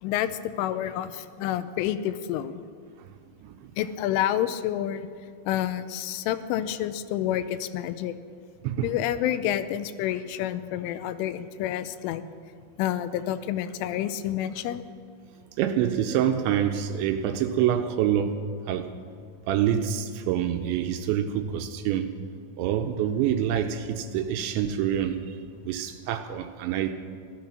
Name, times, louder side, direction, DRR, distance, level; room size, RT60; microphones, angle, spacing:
voice 1, 0.0-2.6 3.8-5.1 5.5-8.1 8.8-12.2 12.8-14.8, left 11 dB, 85° left, 12 dB, 3.1 m, -29 dB
voice 2, 3.4-3.7 8.6-8.9 15.6-18.9 19.5-22.1 22.6-26.9, right 9 dB, 80° right, 7 dB, 2.8 m, -26 dB
16.5 x 13.5 x 6.1 m, 2.2 s
omnidirectional pair, 5.6 m